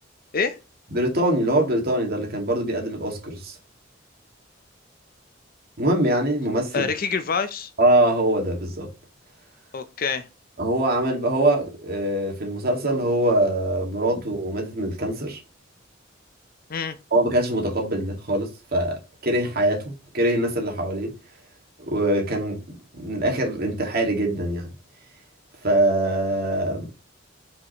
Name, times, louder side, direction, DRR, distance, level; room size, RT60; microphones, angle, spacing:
voice 1, 0.9-3.6 5.8-6.9 7.8-8.9 10.6-15.4 17.1-21.1 21.8-22.6 22.9-24.7 25.6-26.9, right 1 dB, 55° right, 2.2 m, -23 dB
voice 2, 6.7-7.7 9.7-10.3 16.7-17.0, left 5 dB, 50° left, 0.7 m, -26 dB
5.7 x 5.4 x 3.1 m
head